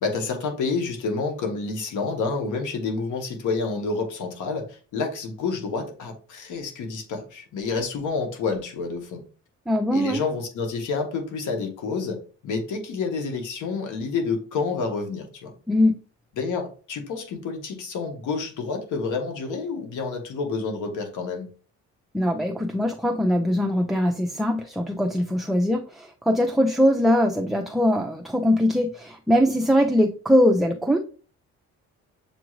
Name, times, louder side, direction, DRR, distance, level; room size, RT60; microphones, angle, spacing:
voice 1, 0.0-9.2 9.9-12.2 12.4-15.5 16.4-21.5, left 4 dB, 80° left, 4 dB, 1.1 m, -29 dB
voice 2, 9.7-10.2 15.7-16.0 22.1-31.0, equal, ahead, 2 dB, 0.4 m, -21 dB
7.0 x 2.4 x 3.1 m, 0.39 s
cardioid pair, 90°, 30 cm